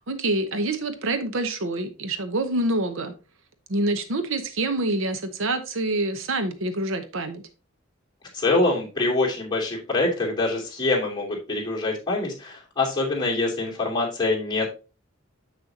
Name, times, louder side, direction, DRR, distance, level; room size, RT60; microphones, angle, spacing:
voice 1, 0.0-3.1 3.7-7.4, right 2 dB, 70° right, 0.9 m, -26 dB
voice 2, 8.3-14.6, left 2 dB, 20° left, 2.8 m, -25 dB
7.5 x 6.4 x 2.8 m
head